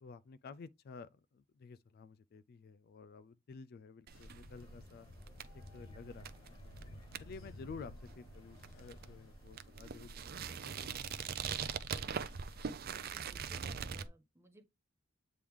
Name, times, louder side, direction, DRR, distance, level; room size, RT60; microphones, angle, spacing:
voice 1, 0.0-5.1 5.7-6.6 7.2-10.4 10.8-11.4, left 5 dB, 50° left, 0.3 m, -52 dB
sound 1, 4.1-12.6, left 1 dB, 90° left, 1.0 m, -56 dB
sound 2, 4.1-14.1, right 6 dB, 50° right, 0.5 m, -43 dB
sound 3, 4.5-10.2, left 1 dB, 25° left, 1.0 m, -63 dB
voice 2, 7.2-7.7 13.0-14.6, right 1 dB, 15° right, 1.0 m, -62 dB
8.5 x 3.2 x 3.5 m
head